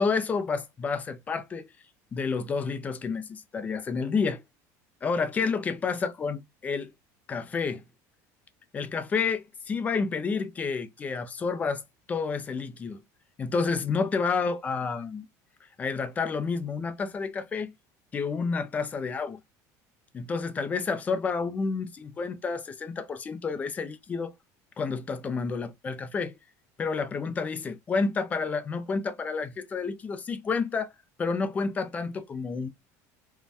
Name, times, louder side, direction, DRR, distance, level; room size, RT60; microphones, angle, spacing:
voice 1, 0.0-1.7 2.1-4.4 5.0-6.9 7.3-7.8 8.7-11.8 12.1-13.0 13.4-15.3 15.8-17.7 18.1-19.4 20.1-24.3 24.8-26.4 26.8-30.9 31.2-32.7, left 5 dB, 20° left, 0.4 m, -30 dB
2.5 x 2.2 x 3.2 m
cardioid pair, 150°, 8 cm